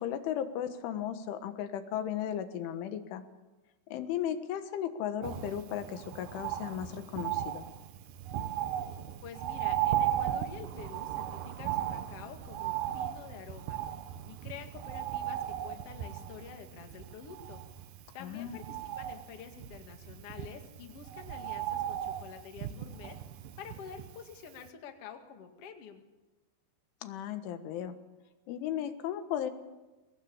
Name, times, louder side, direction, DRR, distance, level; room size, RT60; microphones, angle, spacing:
voice 1, 0.0-3.2 3.9-7.7 18.2-18.6 27.0-28.0 28.5-29.5, left 10 dB, 85° left, 9 dB, 3.9 m, -35 dB
Bird, 5.2-24.3 24.7-24.8, right 11 dB, 85° right, 1.9 m, -36 dB
voice 2, 9.2-13.8 14.2-17.6 18.1-23.2 23.6-26.0, left 7 dB, 45° left, 5 dB, 2.1 m, -48 dB
23.5 x 19.0 x 8.7 m, 1.1 s
omnidirectional pair, 5.5 m